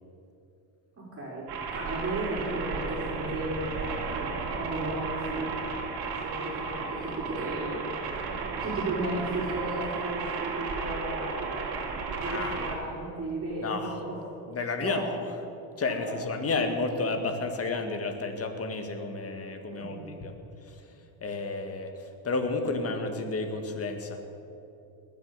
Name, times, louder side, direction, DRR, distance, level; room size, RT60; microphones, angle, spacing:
voice 1, 1.0-5.5 6.1-11.9 12.2-14.4 14.8-15.0 15.9-16.0 19.7-20.1, right 2 dB, 35° right, -5 dB, 4.1 m, -35 dB
sound 1, 1.5-12.7, right 4 dB, 65° right, 2.5 m, -34 dB
voice 2, 12.3-12.7 13.6-14.0 14.5-15.2 15.8-20.3 20.7-20.8 21.2-21.9 22.2-24.2, left 3 dB, 35° left, 6 dB, 1.8 m, -31 dB
20.0 x 7.7 x 6.7 m, 2.9 s
cardioid pair, 110°, 40 cm